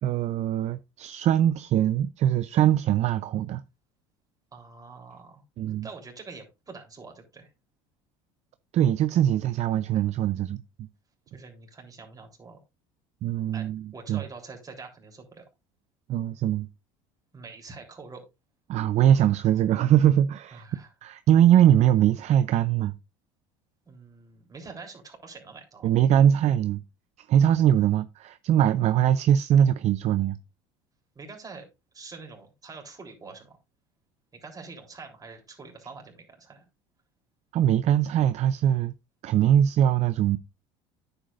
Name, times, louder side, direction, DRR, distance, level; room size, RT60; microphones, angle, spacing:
voice 1, 0.0-3.6 5.6-5.9 8.7-10.9 13.2-14.2 16.1-16.7 18.7-20.6 21.0-22.9 25.8-26.8 27.3-30.4 37.5-38.9 39.2-40.4, right 10 dB, 50° right, 0.6 m, -22 dB
voice 2, 4.5-5.4 5.8-7.5 11.3-12.6 13.5-13.6 13.9-15.4 17.3-18.2 20.5-20.9 23.8-25.9 31.1-31.6 31.9-33.6 34.4-36.6, right 4 dB, 25° right, 3.4 m, -45 dB
9.7 x 7.9 x 2.5 m
supercardioid pair, 90°, 15 cm